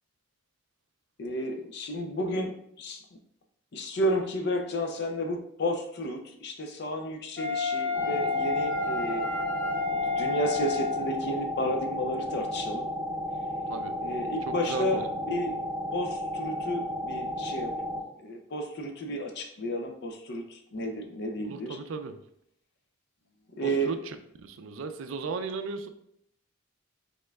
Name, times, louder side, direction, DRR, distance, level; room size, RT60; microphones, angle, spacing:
voice 1, 1.2-3.0 3.7-9.3 9.9-12.9 14.0-15.6 15.9-17.7 18.2-21.8 23.6-23.9, equal, 55° left, 5 dB, 0.5 m, -32 dB
Wind instrument woodwind instrument, 7.4-11.1, left 4 dB, 10° left, 0.9 m, -30 dB
sound 1, 7.9-18.0, left 1 dB, 30° right, 0.6 m, -33 dB
voice 2, 14.5-15.1 21.4-22.2 23.6-24.2 24.4-25.9, right 4 dB, 70° right, 9 dB, 0.4 m, -36 dB
5.3 x 3.6 x 2.3 m, 0.74 s
head